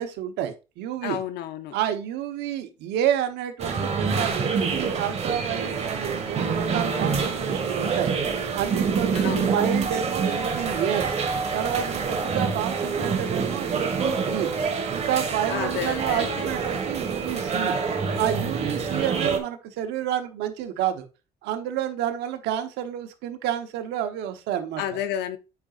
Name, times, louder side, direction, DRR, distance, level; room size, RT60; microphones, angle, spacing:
voice 1, 0.0-1.2 1.7-8.2 8.5-11.1 11.5-14.5 14.9-17.8 18.1-21.1 21.4-24.8, right 10 dB, 90° right, 1.1 m, -29 dB
voice 2, 1.0-1.8 9.1-9.5 15.5-16.5 24.8-25.4, left 10 dB, 80° left, 0.8 m, -31 dB
sound 1, 3.6-19.4, right 5 dB, 40° right, 1.5 m, -26 dB
8.6 x 5.1 x 2.5 m
cardioid pair, 110°, 17 cm